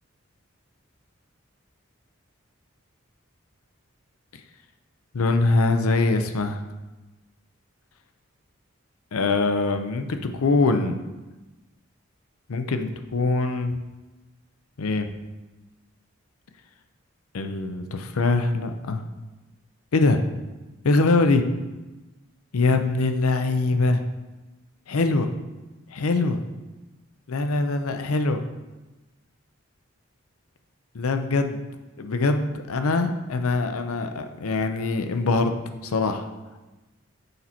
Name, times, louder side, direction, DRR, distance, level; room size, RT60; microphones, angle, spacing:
voice 1, 5.1-6.6 9.1-11.0 12.5-13.8 14.8-15.1 17.3-19.0 19.9-20.2 20.8-21.4 22.5-24.0 24.9-25.3 25.9-26.4 27.3-28.4 30.9-31.6 32.0-35.5 35.8-36.3, left 3 dB, 90° left, 7 dB, 0.6 m, -23 dB
6.7 x 4.2 x 4.3 m, 1.1 s
head